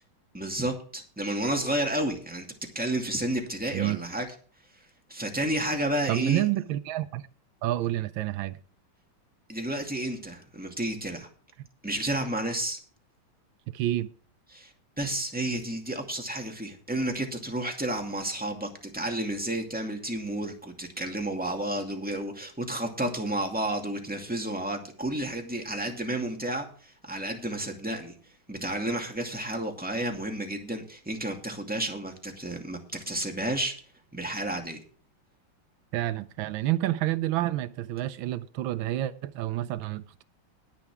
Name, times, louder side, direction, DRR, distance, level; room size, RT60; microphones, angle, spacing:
voice 1, 0.3-2.5 2.7-4.3 5.1-6.5 9.5-11.3 11.8-12.8 14.5-28.1 28.5-33.8 34.1-34.8, right 1 dB, 5° right, 2.2 m, -31 dB
voice 2, 6.1-7.3 7.6-8.6 13.7-14.1 35.9-40.2, right 14 dB, 80° right, 1.5 m, -29 dB
21.0 x 7.0 x 3.5 m
omnidirectional pair, 2.2 m